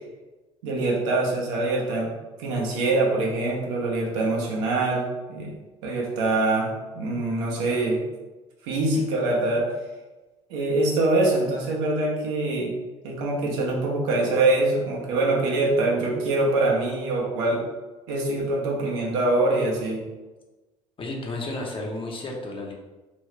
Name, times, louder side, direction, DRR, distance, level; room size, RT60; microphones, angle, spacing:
voice 1, 0.6-2.1 2.4-5.5 5.8-8.0 8.7-9.7 10.5-12.7 13.0-17.6 18.1-20.0, right 2 dB, 70° right, -2 dB, 0.9 m, -24 dB
voice 2, 21.0-22.7, left 2 dB, 35° left, 0 dB, 0.8 m, -32 dB
3.0 x 2.7 x 3.2 m, 1.2 s
hypercardioid pair, 65°, 16 cm